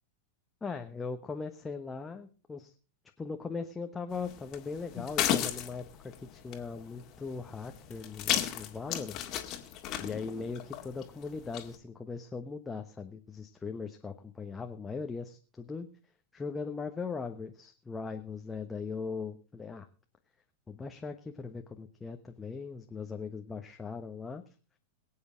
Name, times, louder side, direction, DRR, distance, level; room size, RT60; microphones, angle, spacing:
voice 1, 0.6-2.7 3.2-9.3 10.0-15.9 16.3-19.9 20.7-24.4, left 4 dB, 15° left, 5 dB, 1.1 m, -39 dB
sound 1, 4.1-11.8, left 10 dB, 35° left, 2.0 m, -36 dB
23.0 x 8.7 x 3.8 m, 0.36 s
figure-of-eight pair, 90°, 0 cm